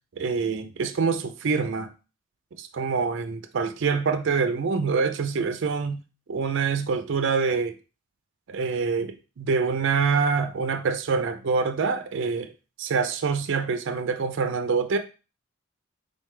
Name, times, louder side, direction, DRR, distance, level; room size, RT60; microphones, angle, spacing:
voice 1, 0.2-1.9 2.6-6.0 6.3-7.7 8.5-12.5 12.8-15.0, right 5 dB, 60° right, 0.4 m, -25 dB
4.0 x 3.2 x 3.2 m
head